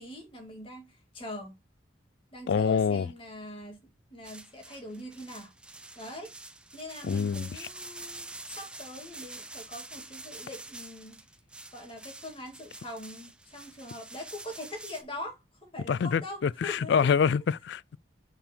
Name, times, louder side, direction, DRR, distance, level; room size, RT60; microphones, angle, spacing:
voice 1, 0.0-1.5 2.3-3.8 4.1-5.5 6.0-6.3 6.7-11.2 11.7-17.1, left 1 dB, 30° left, 2.1 m, -42 dB
voice 2, 2.5-3.1 7.0-7.7 15.9-18.0, left 6 dB, 65° left, 0.3 m, -26 dB
sound 1, 4.2-15.0, right 2 dB, 5° right, 0.5 m, -46 dB
5.6 x 4.3 x 4.3 m
head